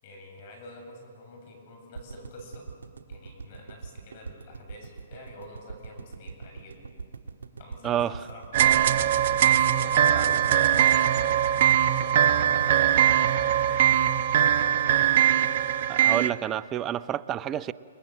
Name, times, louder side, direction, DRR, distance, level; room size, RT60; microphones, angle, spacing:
voice 1, 0.0-2.7 3.1-6.8 7.6-8.9 9.4-14.2, left 1 dB, 50° left, 8.0 m, -48 dB
sound 1, 1.9-14.1 14.4-14.5 14.7-14.8, right 5 dB, 80° right, 1.6 m, -42 dB
voice 2, 7.8-8.1 10.2-10.3 15.9-17.7, right 10 dB, 25° right, 0.6 m, -29 dB
sound 2, 8.5-16.3, right 10 dB, 55° right, 1.0 m, -21 dB
29.5 x 20.5 x 7.8 m
hypercardioid pair, 130°, 0 cm